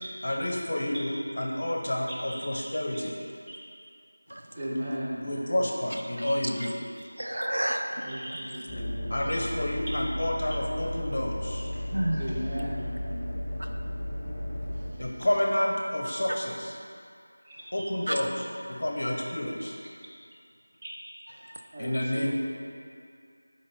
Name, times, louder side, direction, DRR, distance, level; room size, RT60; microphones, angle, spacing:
voice 1, 0.2-3.1 5.2-6.7 9.1-11.7 15.0-16.7 17.7-18.3 18.7-19.8 21.8-22.3, left 1 dB, 50° left, 0 dB, 0.8 m, -29 dB
voice 2, 2.1-3.0 3.5-3.6 4.6-5.4 6.2-6.7 8.0-9.4 9.7-10.0 11.7-11.8 12.2-13.1 17.4-17.8 20.8-20.9 21.7-22.3, equal, 20° right, -7 dB, 0.8 m, -37 dB
voice 3, 5.9-6.7 7.2-8.4 11.9-12.3 13.6-13.7 14.7-15.0 16.3-16.4 18.1-18.2 21.4-21.8, right 1 dB, 70° right, 4 dB, 0.5 m, -32 dB
sound 1, 8.7-14.9, left 1 dB, 10° left, 0.8 m, -34 dB
5.4 x 4.5 x 4.2 m, 2.3 s
figure-of-eight pair, 170°, 0 cm